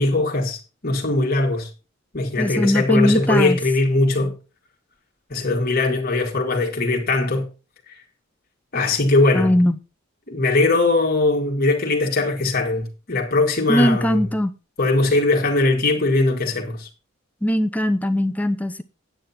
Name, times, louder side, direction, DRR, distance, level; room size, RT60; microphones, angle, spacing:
voice 1, 0.0-1.7 2.1-4.3 5.3-7.5 7.9-8.0 8.7-9.5 10.3-14.3 14.8-16.9, left 2 dB, 45° left, 1.9 m, -20 dB
voice 2, 2.4-3.6 9.3-9.7 13.7-14.5 17.4-18.8, equal, 5° left, 0.7 m, -20 dB
9.7 x 9.1 x 4.3 m
head